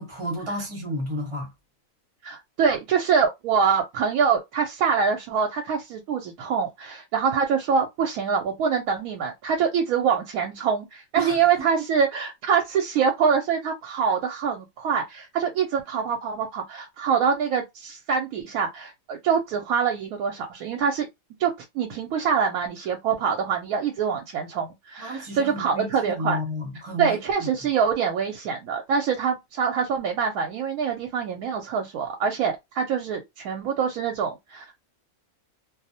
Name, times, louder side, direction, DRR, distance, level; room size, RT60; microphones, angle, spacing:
voice 1, 0.0-1.5 11.2-11.8 25.0-27.5, equal, 25° right, 0.7 m, -32 dB
voice 2, 2.2-21.1 21.4-26.4 27.0-34.7, right 6 dB, 85° right, 1.0 m, -25 dB
2.5 x 2.0 x 2.6 m
omnidirectional pair, 1.5 m